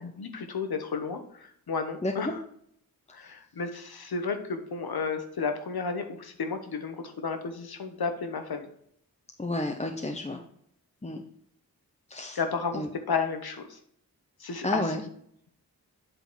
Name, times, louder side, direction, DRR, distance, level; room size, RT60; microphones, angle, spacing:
voice 1, 0.0-1.2 1.7-2.4 3.1-8.7 12.3-12.8 13.1-13.8 14.4-14.9, left 5 dB, 70° left, 7 dB, 1.1 m, -32 dB
voice 2, 9.4-10.4 11.0-11.2 12.1-12.4 12.7-12.9 14.6-15.0, left 1 dB, 15° left, 2 dB, 0.8 m, -31 dB
8.1 x 3.8 x 4.6 m, 0.69 s
cardioid pair, 55°, 39 cm